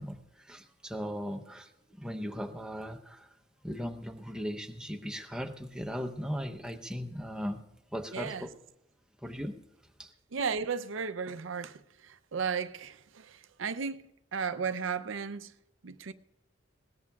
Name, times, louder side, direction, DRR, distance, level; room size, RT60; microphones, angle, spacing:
voice 1, 0.0-3.3 3.6-7.6 7.9-8.5 9.2-9.6 10.0-10.1, equal, 5° right, 0.8 m, -38 dB
voice 2, 8.1-8.5 10.3-15.5 15.8-16.1, right 6 dB, 80° right, 0.6 m, -35 dB
20.5 x 18.5 x 2.4 m
head